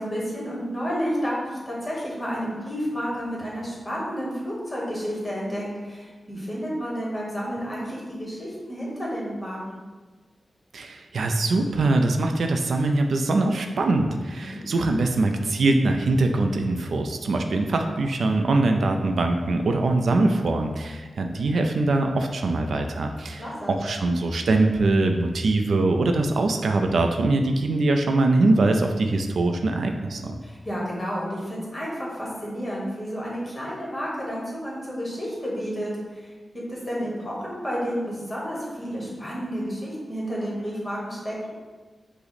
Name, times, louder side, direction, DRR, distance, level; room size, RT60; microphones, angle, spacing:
voice 1, 0.0-9.8 14.4-14.6 23.4-23.8 30.4-41.5, equal, 15° left, -5 dB, 1.2 m, -31 dB
voice 2, 10.7-30.4, right 2 dB, 75° right, 5 dB, 0.3 m, -22 dB
5.6 x 2.0 x 4.0 m, 1.3 s
wide cardioid pair, 140°, 0 cm